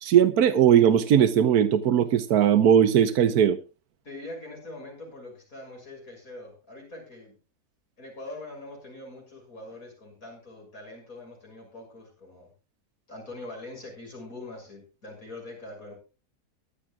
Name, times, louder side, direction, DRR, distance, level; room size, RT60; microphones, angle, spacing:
voice 1, 0.0-3.6, right 9 dB, 80° right, 1.4 m, -19 dB
voice 2, 4.0-7.4 8.0-12.5 13.1-16.0, left 2 dB, 65° left, 7.1 m, -43 dB
23.0 x 11.5 x 2.3 m
omnidirectional pair, 1.6 m